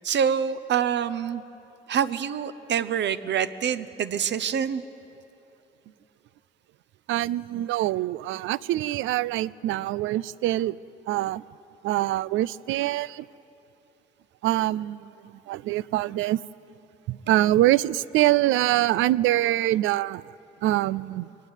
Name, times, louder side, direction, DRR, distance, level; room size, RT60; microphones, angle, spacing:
voice 1, 0.1-1.4 1.9-4.8, right 8 dB, 65° right, 13 dB, 0.9 m, -26 dB
voice 2, 7.1-10.8 11.1-11.4 11.8-13.2 14.4-15.1 15.5-16.4 17.1-20.2 20.6-21.3, right 15 dB, 90° right, 20 dB, 0.4 m, -24 dB
23.0 x 19.0 x 8.2 m, 3.0 s
cardioid pair, 90°, 20 cm